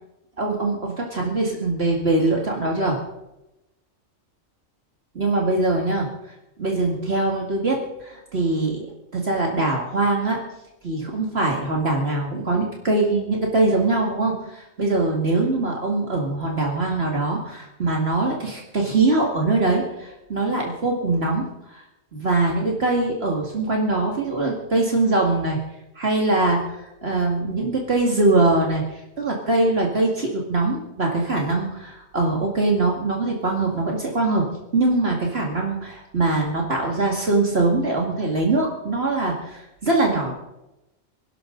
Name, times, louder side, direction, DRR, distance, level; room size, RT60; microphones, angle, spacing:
voice 1, 0.4-3.0 5.1-6.1 6.6-8.9 9.1-10.4 10.8-21.8 22.1-25.6 26.0-28.8 29.2-34.5 34.7-40.3, right 2 dB, 55° right, -1 dB, 2.4 m, -22 dB
26.5 x 12.0 x 3.9 m, 0.93 s
omnidirectional pair, 1.3 m